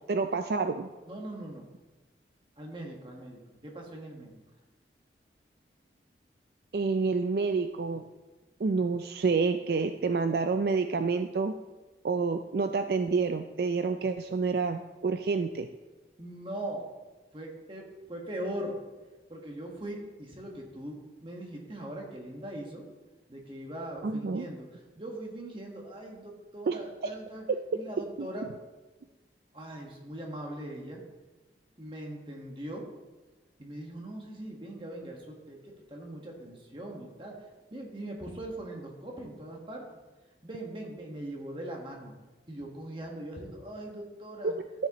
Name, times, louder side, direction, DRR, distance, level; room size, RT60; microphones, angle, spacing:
voice 1, 0.0-0.9 6.7-8.0 8.6-11.5 12.0-15.7 24.0-24.5 26.7-27.1 27.5-27.6 28.2-28.3 44.4-44.5, right 4 dB, 60° right, 8 dB, 0.4 m, -28 dB
voice 2, 1.1-1.7 2.6-4.4 16.2-16.8 17.3-18.8 19.3-22.8 23.3-27.4 27.7-28.5 29.5-31.0 31.8-32.9 33.6-37.4 37.7-39.8 40.4-42.1 42.5-44.5, right 1 dB, 30° right, 0 dB, 1.5 m, -40 dB
13.5 x 7.4 x 3.0 m, 1.2 s
head